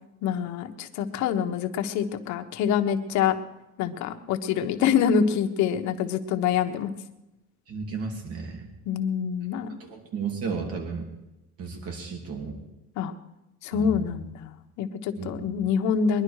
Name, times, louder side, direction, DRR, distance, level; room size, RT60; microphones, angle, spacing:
voice 1, 0.2-3.3 3.8-6.9 8.9-9.8 13.0-13.1 13.6-16.2, left 7 dB, 70° left, 6 dB, 1.2 m, -26 dB
voice 2, 7.7-8.7 9.8-11.1 11.6-12.6 13.7-14.1 15.2-15.3, right 5 dB, 50° right, 3 dB, 2.6 m, -34 dB
22.0 x 11.0 x 4.9 m, 0.97 s
cardioid pair, 170°, 30 cm